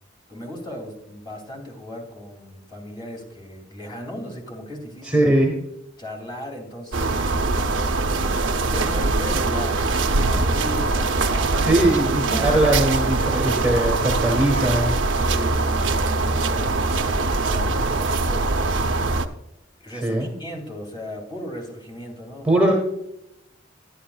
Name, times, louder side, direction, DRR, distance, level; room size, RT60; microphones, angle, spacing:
voice 1, 0.3-5.3 6.0-7.2 8.4-11.7 15.0-19.2 19.8-22.6, left 1 dB, 25° left, 0 dB, 2.8 m, -37 dB
voice 2, 5.1-5.5 11.6-14.9 20.0-20.3 22.4-22.7, right 1 dB, 5° right, 0 dB, 1.5 m, -20 dB
sound 1, 6.9-19.3, right 3 dB, 70° right, 0.7 m, -22 dB
11.5 x 10.5 x 2.4 m, 0.82 s
head